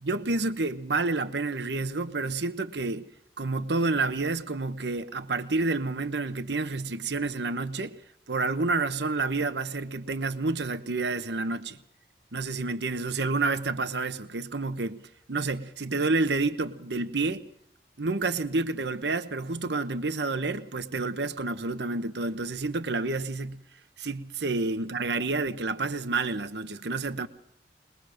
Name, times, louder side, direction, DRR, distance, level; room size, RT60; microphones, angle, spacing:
voice 1, 0.0-3.1 3.4-8.0 8.3-11.8 12.3-15.0 15.3-17.5 18.0-23.6 24.0-27.3, right 3 dB, 70° right, 1.0 m, -29 dB
22.0 x 22.0 x 6.4 m
head